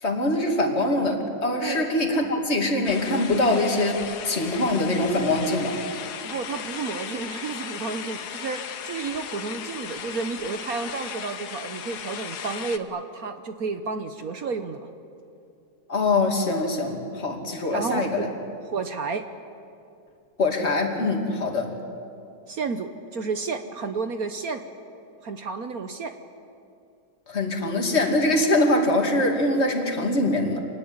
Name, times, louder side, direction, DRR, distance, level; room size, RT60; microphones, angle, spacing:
voice 1, 0.0-5.8 15.9-18.3 20.4-21.8 27.3-30.6, left 2 dB, 35° left, 1 dB, 2.9 m, -23 dB
sound 1, 2.8-12.8, left 8 dB, 70° left, 1.5 m, -36 dB
voice 2, 6.2-14.9 17.7-18.3 18.7-19.2 22.5-24.6 25.2-26.1, right 4 dB, 60° right, 8 dB, 1.4 m, -31 dB
27.0 x 20.0 x 8.9 m, 2.6 s
omnidirectional pair, 1.9 m